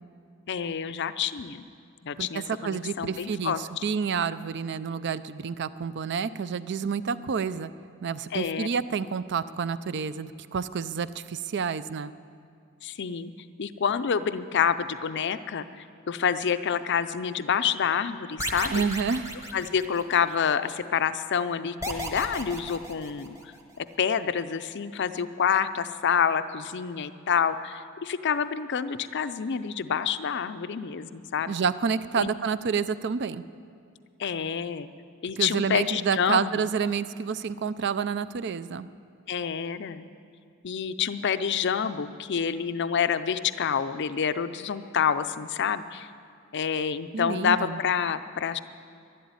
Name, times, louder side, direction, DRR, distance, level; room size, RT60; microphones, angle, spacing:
voice 1, 0.5-1.7 2.0-3.6 8.3-8.7 12.8-13.3 13.6-18.8 19.5-23.4 23.8-31.6 32.2-32.3 34.2-34.9 35.2-36.5 39.3-40.1 40.6-46.1 46.5-48.6, left 7 dB, 50° left, 12 dB, 0.5 m, -28 dB
voice 2, 2.2-7.7 8.0-12.1 18.7-19.3 31.5-33.4 35.4-38.9 47.1-47.8, right 6 dB, 50° right, 15 dB, 0.4 m, -29 dB
sound 1, 18.4-20.4 21.8-23.6, right 1 dB, 15° right, 1.1 m, -35 dB
12.5 x 11.5 x 9.5 m, 2.3 s
head